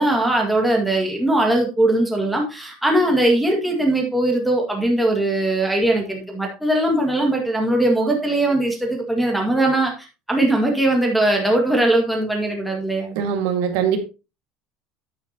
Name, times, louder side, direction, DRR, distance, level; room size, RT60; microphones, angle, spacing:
voice 1, 0.0-9.9 10.3-13.2, right 1 dB, ahead, -1 dB, 2.0 m, -20 dB
voice 2, 13.2-14.0, right 8 dB, 70° right, 5 dB, 1.9 m, -21 dB
10.0 x 8.8 x 2.9 m, 0.29 s
cardioid pair, 175°, 0 cm